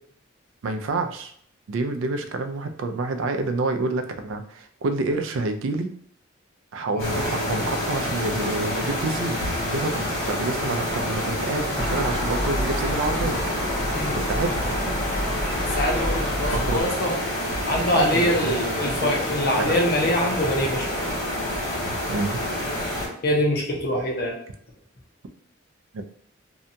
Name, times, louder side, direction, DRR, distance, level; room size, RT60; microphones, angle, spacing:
voice 1, 0.6-1.3 1.7-5.9 6.7-9.4 9.7-13.4 14.1-14.6 16.5-16.9 17.9-18.6 18.8-19.1 19.6-19.8 21.8-22.4 25.9-26.0, right 3 dB, 70° right, 7 dB, 0.3 m, -28 dB
voice 2, 6.9-7.3 13.9-14.2 15.8-17.1 17.7-21.2 23.2-24.4, equal, 50° left, -1 dB, 0.6 m, -24 dB
sound 1, 7.0-23.1, left 1 dB, 90° left, 1.1 m, -28 dB
Gull seagull, 11.8-16.8, equal, 5° left, 0.6 m, -29 dB
2.7 x 2.2 x 2.6 m, 0.64 s
head